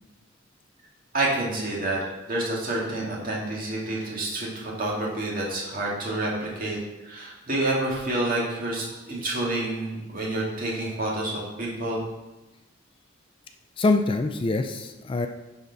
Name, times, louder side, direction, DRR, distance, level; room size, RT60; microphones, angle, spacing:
voice 1, 1.1-6.8 7.0-12.0, right 2 dB, 45° right, -3 dB, 1.9 m, -28 dB
voice 2, 13.8-15.3, left 3 dB, 25° left, 6 dB, 0.3 m, -24 dB
10.0 x 4.2 x 4.0 m, 1.0 s
head